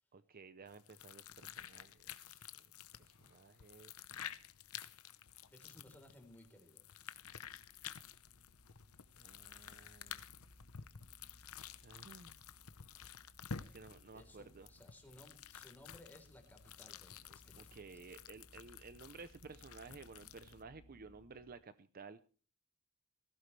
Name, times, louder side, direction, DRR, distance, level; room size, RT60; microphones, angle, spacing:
voice 1, 0.1-2.5 2.9-3.9 9.2-10.2 11.8-12.4 13.6-14.7 17.6-22.2, right 4 dB, 40° right, 13 dB, 0.6 m, -55 dB
sound 1, 0.7-20.6, left 8 dB, 75° left, 0.9 m, -52 dB
voice 2, 5.5-6.8 14.1-18.0, left 1 dB, 10° left, 2 dB, 3.9 m, -60 dB
sound 2, 7.2-21.5, equal, 55° left, 4.8 m, -65 dB
19.0 x 15.5 x 3.3 m, 0.38 s
head